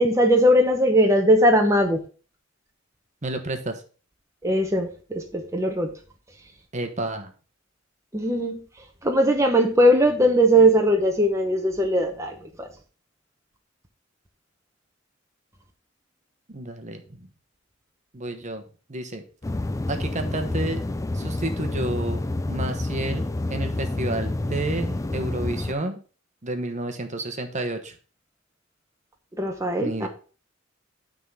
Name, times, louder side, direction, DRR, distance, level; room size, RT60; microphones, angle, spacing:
voice 1, 0.0-2.0 4.4-5.9 8.1-8.6 9.0-12.7 29.4-30.1, equal, 15° right, 3 dB, 0.9 m, -19 dB
voice 2, 3.2-3.8 6.7-7.3 16.5-17.0 18.1-18.6 18.9-19.2 19.9-20.8 21.1-22.2 22.5-26.0 26.4-27.9 29.8-30.1, right 2 dB, 40° right, 6 dB, 1.1 m, -30 dB
sound 1, 19.4-25.7, left 2 dB, 15° left, 0.4 m, -28 dB
9.3 x 3.8 x 5.6 m, 0.37 s
head